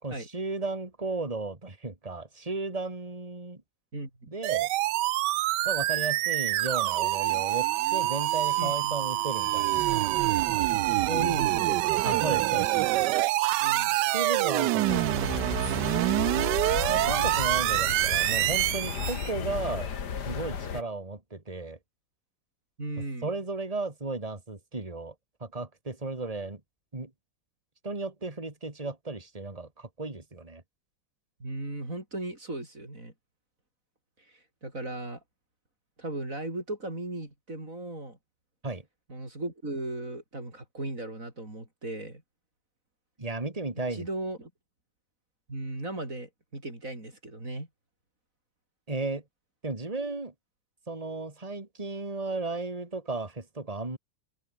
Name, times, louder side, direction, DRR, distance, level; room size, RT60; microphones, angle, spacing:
voice 1, 0.0-3.6 4.3-4.7 5.6-9.8 12.0-12.9 14.1-15.6 16.9-19.9 20.2-21.8 23.2-25.1 25.4-26.6 26.9-27.1 27.8-30.6 38.6-38.8 43.2-44.1 48.9-49.2 49.6-50.3 50.9-54.0, right 3 dB, 20° right, 3.1 m, -35 dB
voice 2, 3.9-4.3 8.6-9.2 11.1-12.2 13.6-14.0 16.3-16.6 22.8-23.3 31.4-33.1 34.3-35.2 36.0-38.2 39.1-42.2 43.9-44.5 45.5-47.7, right 2 dB, 40° right, 6.8 m, -37 dB
sound 1, 4.4-19.3, right 16 dB, 75° right, 1.1 m, -26 dB
sound 2, 14.9-20.8, left 7 dB, 55° left, 2.2 m, -34 dB
omnidirectional pair, 2.1 m